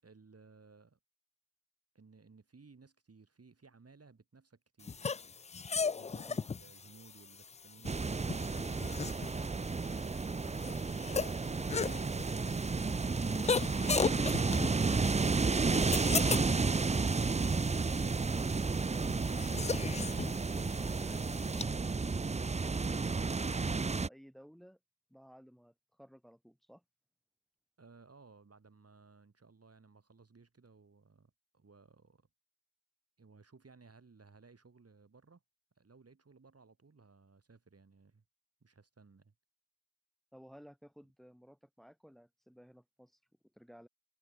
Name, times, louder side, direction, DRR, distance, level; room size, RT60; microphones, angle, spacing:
voice 1, 0.0-1.0 1.9-5.2 6.0-8.8 27.8-32.3 33.2-35.4 35.8-38.2 38.6-39.3, right 4 dB, 30° right, 7.6 m, -60 dB
sound 1, 4.8-21.6, left 5 dB, 15° left, 0.5 m, -38 dB
sound 2, 7.8-24.1, right 4 dB, 15° right, 0.7 m, -32 dB
voice 2, 20.8-22.1 23.9-24.8 25.1-26.8 40.3-43.2 43.5-43.9, equal, ahead, 6.8 m, -57 dB
hypercardioid pair, 55°, 45 cm